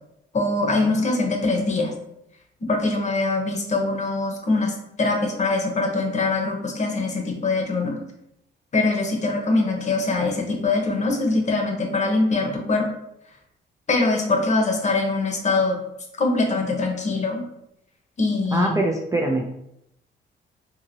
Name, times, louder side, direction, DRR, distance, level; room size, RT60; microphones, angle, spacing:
voice 1, 0.3-1.9 2.6-8.0 8.7-12.9 13.9-15.8 16.2-17.4 18.2-18.8, left 3 dB, 35° left, 1 dB, 0.8 m, -23 dB
voice 2, 18.5-19.5, right 2 dB, 15° right, 0 dB, 0.3 m, -23 dB
2.8 x 2.7 x 2.6 m, 0.80 s
cardioid pair, 90°, 20 cm